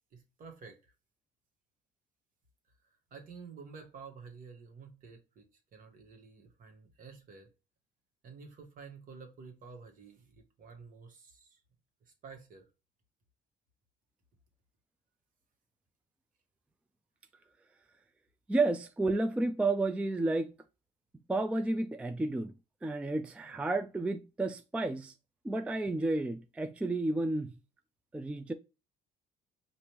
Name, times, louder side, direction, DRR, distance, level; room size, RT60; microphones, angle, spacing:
voice 1, 0.1-0.9 3.1-5.4 5.7-7.5 8.2-11.6 12.1-12.6, right 5 dB, 55° right, 1.3 m, -51 dB
voice 2, 18.5-20.5 21.3-22.5 22.8-25.1 25.4-27.5 28.1-28.5, right 2 dB, 5° right, 0.3 m, -31 dB
5.0 x 2.5 x 3.0 m
cardioid pair, 110°, 17 cm